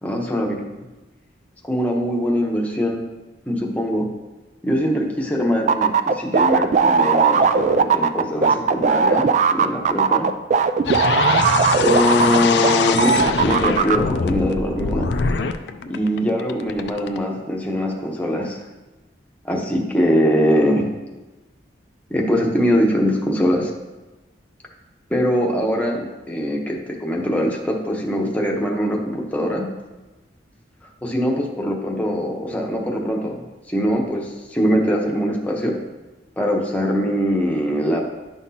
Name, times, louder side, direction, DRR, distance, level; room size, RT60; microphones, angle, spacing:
voice 1, 0.0-0.7 1.6-3.0 3.5-4.1 4.6-10.3 11.8-15.1 15.9-18.6 19.4-20.9 22.1-23.7 25.1-29.7 31.0-35.8 36.4-38.0, equal, 10° left, -1 dB, 0.9 m, -22 dB
sound 1, 5.7-12.7 13.0-14.0, right 5 dB, 40° right, 0.3 m, -17 dB
sound 2, 10.8-17.2, left 5 dB, 65° left, 0.4 m, -23 dB
10.5 x 5.8 x 2.8 m, 1.1 s
head